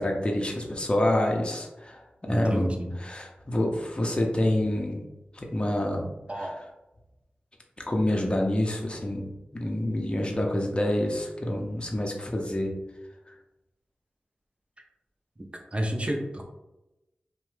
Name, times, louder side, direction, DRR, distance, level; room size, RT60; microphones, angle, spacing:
voice 1, 0.0-2.0 2.3-5.1 5.3-6.6 7.9-12.7 13.3-13.4, left 1 dB, 30° left, 0 dB, 0.6 m, -27 dB
voice 2, 2.5-3.0 6.3-6.5 15.7-16.4, equal, 30° right, 2 dB, 0.6 m, -29 dB
2.8 x 2.1 x 3.2 m, 0.97 s
cardioid pair, 40°, 4 cm